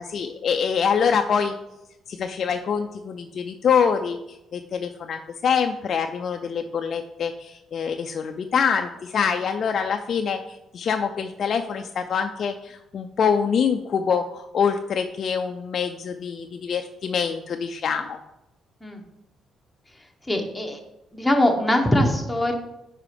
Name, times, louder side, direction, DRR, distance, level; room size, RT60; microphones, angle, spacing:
voice 1, 0.0-1.5 2.1-4.2 4.5-18.2, left 6 dB, 55° left, 5 dB, 0.4 m, -25 dB
voice 2, 20.3-20.8 21.1-22.5, left 1 dB, 5° left, 1 dB, 1.1 m, -22 dB
4.8 x 4.1 x 5.0 m, 0.91 s
cardioid pair, 90°, 0 cm